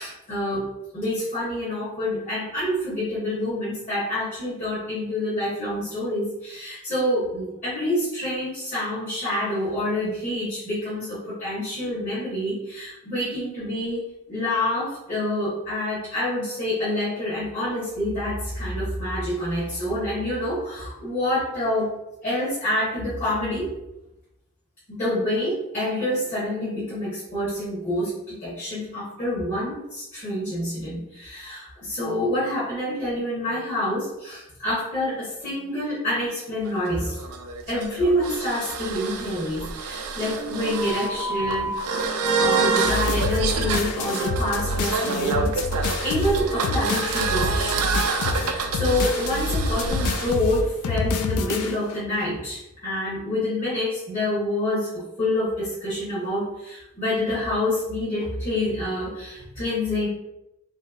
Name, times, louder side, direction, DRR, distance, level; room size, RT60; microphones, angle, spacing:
voice 1, 0.0-14.0 14.3-21.9 22.2-23.8 24.9-37.2 37.7-42.0 42.4-47.8 48.2-60.1, left 1 dB, 35° left, -10 dB, 0.9 m, -27 dB
sound 1, 36.6-50.4, right 4 dB, 80° right, 0.4 m, -27 dB
sound 2, 42.8-52.0, left 3 dB, 85° left, 0.3 m, -27 dB
3.2 x 2.8 x 2.3 m, 0.89 s
head